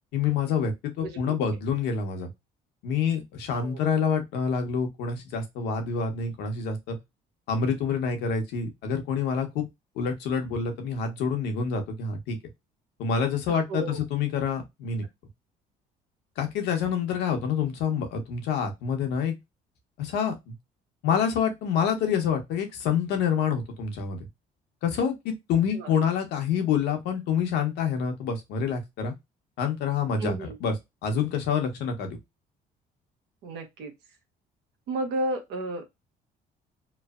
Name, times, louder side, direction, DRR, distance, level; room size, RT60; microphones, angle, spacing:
voice 1, 0.1-2.3 2.8-7.0 7.5-9.7 10.0-12.4 13.0-15.0 16.4-19.3 20.0-20.5 21.0-24.2 24.8-29.1 29.6-30.7 31.0-32.2, left 6 dB, 85° left, 5 dB, 0.9 m, -27 dB
voice 2, 1.0-1.4 3.5-3.8 13.5-14.0 25.7-25.9 30.2-30.6 33.4-33.9 34.9-35.9, right 2 dB, 80° right, 4 dB, 1.0 m, -32 dB
3.1 x 2.0 x 2.3 m, 0.20 s
cardioid pair, 110°, 17 cm